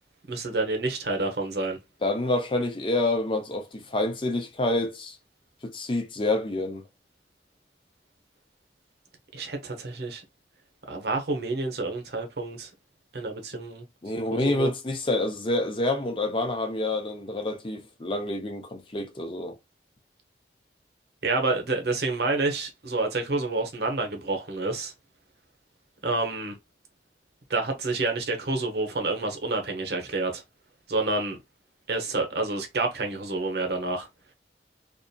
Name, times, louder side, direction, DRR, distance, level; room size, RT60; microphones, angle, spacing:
voice 1, 0.3-1.8 9.3-10.2 10.9-12.7 13.1-13.8 14.3-14.7 21.2-24.9 26.0-26.5 27.5-30.4 30.9-31.4 31.9-34.1, right 3 dB, 65° right, 0.8 m, -28 dB
voice 2, 2.0-5.2 5.6-6.8 14.0-19.5, left 2 dB, 30° left, 0.5 m, -27 dB
2.7 x 2.4 x 2.2 m
head